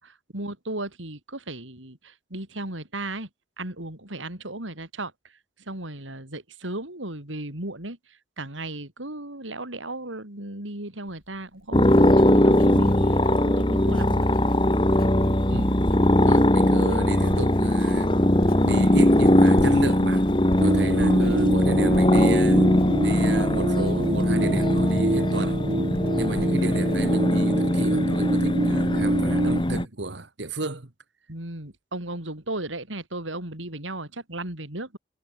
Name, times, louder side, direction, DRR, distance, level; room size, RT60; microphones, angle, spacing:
voice 1, 0.0-3.3 3.6-5.3 5.6-14.3 20.7-21.3 31.3-35.0, right 2 dB, 90° right, 5.4 m, -36 dB
Writing, 11.1-28.1 28.4-28.9, left 1 dB, 50° left, 4.4 m, -43 dB
sound 1, 11.7-29.9, left 1 dB, 25° left, 1.7 m, -20 dB
voice 2, 16.2-18.1 18.6-20.3 20.6-22.7 23.0-25.6 26.2-30.9, right 2 dB, 70° right, 1.9 m, -32 dB
sound 2, 20.6-29.6, right 2 dB, 45° right, 1.0 m, -27 dB
head